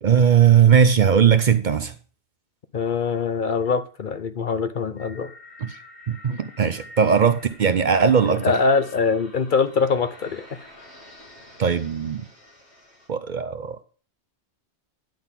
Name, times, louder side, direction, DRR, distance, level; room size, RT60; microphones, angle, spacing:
voice 1, 0.0-1.9 5.6-5.8 6.1-8.6 11.6-12.2 13.1-13.8, right 7 dB, 50° right, 0.7 m, -18 dB
voice 2, 2.7-5.3 8.4-10.5, left 4 dB, 50° left, 0.8 m, -23 dB
sound 1, 5.0-13.1, left 2 dB, 75° left, 3.0 m, -47 dB
10.5 x 4.0 x 7.2 m
omnidirectional pair, 1.1 m